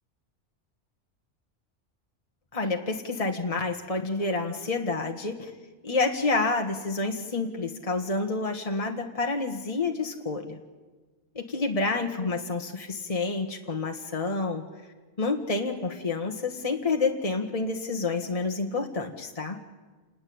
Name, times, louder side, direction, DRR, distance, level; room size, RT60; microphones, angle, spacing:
voice 1, 2.5-5.5 5.8-10.6 11.3-14.6 15.2-19.6, left 3 dB, 30° left, 3 dB, 1.7 m, -29 dB
28.5 x 20.0 x 8.8 m, 1.3 s
omnidirectional pair, 1.2 m